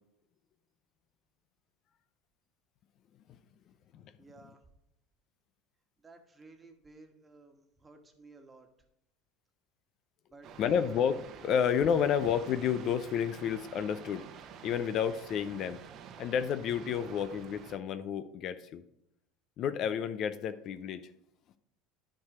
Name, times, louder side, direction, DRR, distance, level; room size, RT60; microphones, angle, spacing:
voice 1, 4.2-4.6 6.0-8.7 10.3-10.9, right 3 dB, 20° right, 1.5 m, -55 dB
sound 1, 10.4-17.8, right 7 dB, 50° right, 0.9 m, -49 dB
voice 2, 10.6-14.3 14.6-15.8 16.2-18.8 19.6-21.1, left 8 dB, 50° left, 0.6 m, -30 dB
10.5 x 4.7 x 5.0 m
supercardioid pair, 95°, 0 cm